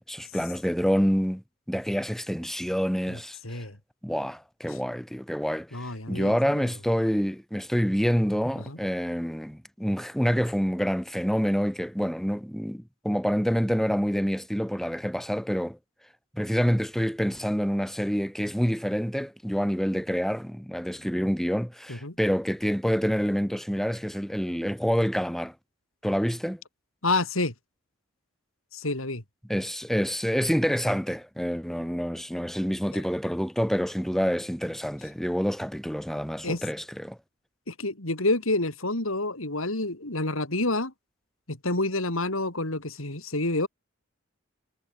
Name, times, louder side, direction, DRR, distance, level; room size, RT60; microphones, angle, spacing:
voice 1, 0.0-3.7 4.0-15.8 16.3-25.5 26.0-26.6 29.5-37.2, equal, ahead, 3.7 m, -27 dB
voice 2, 5.7-6.7 8.7-8.8 21.9-22.1 27.0-27.5 28.7-29.2 36.4-36.6 37.7-40.9 41.5-43.7, left 2 dB, 80° left, 4.4 m, -28 dB
head